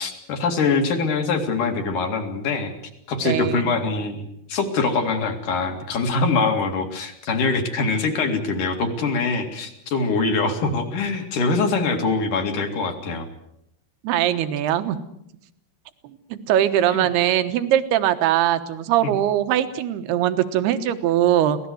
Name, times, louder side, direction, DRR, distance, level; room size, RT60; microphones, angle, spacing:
voice 1, 0.0-2.7 3.1-13.3 16.9-17.1 19.0-19.1, left 4 dB, 55° left, 5 dB, 3.5 m, -23 dB
voice 2, 3.2-3.7 14.0-15.0 16.3-21.6, right 11 dB, 80° right, 10 dB, 3.2 m, -21 dB
24.5 x 18.0 x 7.9 m, 0.77 s
omnidirectional pair, 4.7 m